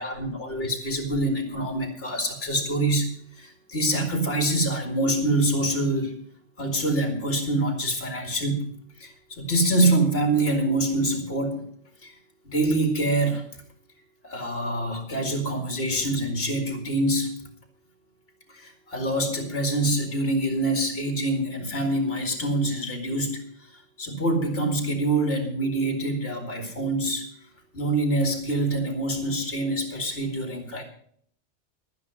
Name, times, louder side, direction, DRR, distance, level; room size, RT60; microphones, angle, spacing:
voice 1, 0.0-3.1 3.4-6.2 6.6-8.7 9.0-11.6 12.0-12.1 12.4-13.4 14.2-17.4 18.5-23.5 23.7-27.3 27.7-30.8, right 1 dB, 55° left, 4 dB, 2.5 m, -25 dB
11.0 x 9.8 x 6.2 m, 0.62 s
omnidirectional pair, 1.2 m